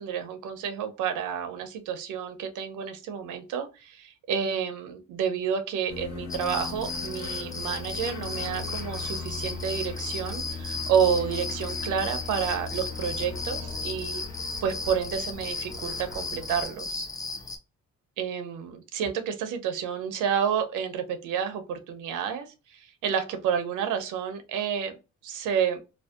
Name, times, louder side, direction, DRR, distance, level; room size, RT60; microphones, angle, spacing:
voice 1, 0.0-14.2 14.6-17.1 18.2-24.9 25.2-25.8, right 7 dB, 85° right, 8 dB, 0.6 m, -30 dB
sound 1, 5.9-16.7, left 4 dB, 70° left, 0.8 m, -38 dB
sound 2, 6.3-17.6, left 3 dB, 15° left, 0.3 m, -35 dB
2.6 x 2.0 x 2.3 m, 0.29 s
cardioid pair, 90°, 30 cm